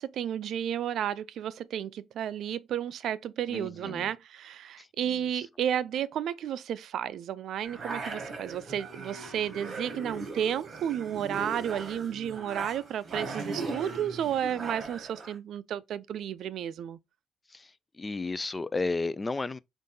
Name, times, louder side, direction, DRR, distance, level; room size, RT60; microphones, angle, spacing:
voice 1, 0.0-17.0, right 9 dB, 70° right, 0.4 m, -32 dB
voice 2, 3.5-4.1 4.8-5.5 14.6-14.7 17.5-19.6, left 3 dB, 25° left, 0.3 m, -34 dB
sound 1, 7.6-15.3, right 3 dB, 45° right, 1.6 m, -39 dB
5.2 x 2.6 x 3.7 m
cardioid pair, 80°, 0 cm